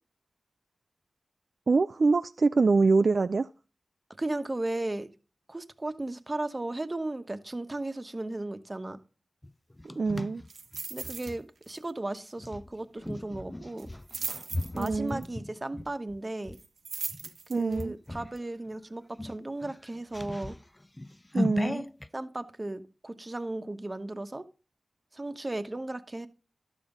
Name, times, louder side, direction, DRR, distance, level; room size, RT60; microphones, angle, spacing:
voice 1, 1.7-3.5 10.0-10.4 14.8-15.2 17.5-17.9 21.3-21.9, right 4 dB, 65° right, 0.4 m, -24 dB
voice 2, 4.2-5.1 5.5-9.0 10.9-13.9 14.7-16.6 17.5-20.6 22.1-24.4 25.1-26.3, right 2 dB, 30° right, 1.1 m, -35 dB
sound 1, 9.4-11.4 12.4-16.6 17.1-17.4 17.7-18.4 18.7-18.8 19.1-22.1, left 1 dB, 20° left, 0.4 m, -37 dB
sound 2, 10.5-11.3 11.6-11.9 12.2-12.3 13.8-15.2 16.5-17.8 18.4-18.5, right 4 dB, 80° right, 0.8 m, -38 dB
12.0 x 7.2 x 3.8 m
cardioid pair, 60°, 0 cm